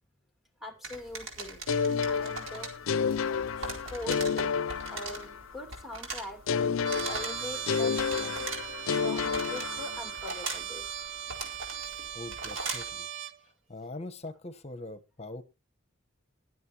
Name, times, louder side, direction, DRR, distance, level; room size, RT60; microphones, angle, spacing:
voice 1, 0.6-1.6 2.1-2.7 3.5-4.5 4.9-8.5 8.9-10.9, left 1 dB, ahead, 4 dB, 2.4 m, -43 dB
sound 1, 0.8-13.0, right 3 dB, 85° right, 4.3 m, -41 dB
sound 2, 1.7-5.6 6.5-10.3, left 6 dB, 85° left, 0.5 m, -30 dB
Trumpet, 6.8-13.4, right 9 dB, 65° right, 0.8 m, -39 dB
voice 2, 11.8-13.1 13.7-15.4, left 2 dB, 35° left, 11 dB, 1.2 m, -42 dB
21.5 x 7.8 x 3.0 m, 0.28 s
head